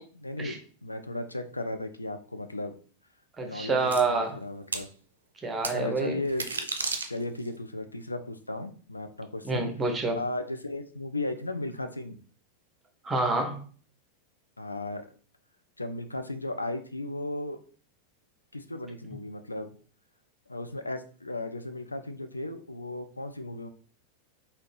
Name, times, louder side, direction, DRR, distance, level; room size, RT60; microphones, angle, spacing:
voice 1, 0.1-2.7 3.4-4.9 5.7-6.7 7.0-9.7 10.2-12.2 14.6-15.1 15.8-17.6 18.5-19.7 20.5-23.7, left 2 dB, 80° left, 8 dB, 0.4 m, -35 dB
voice 2, 3.4-4.4 5.4-6.2 9.4-10.2 13.0-13.7, right 3 dB, 15° right, 5 dB, 0.8 m, -27 dB
sound 1, 3.9-4.0 4.7-4.9 5.6-5.8 6.3-7.5, right 4 dB, 70° right, 0.4 m, -32 dB
3.9 x 2.8 x 3.2 m, 0.41 s
figure-of-eight pair, 90°, 0 cm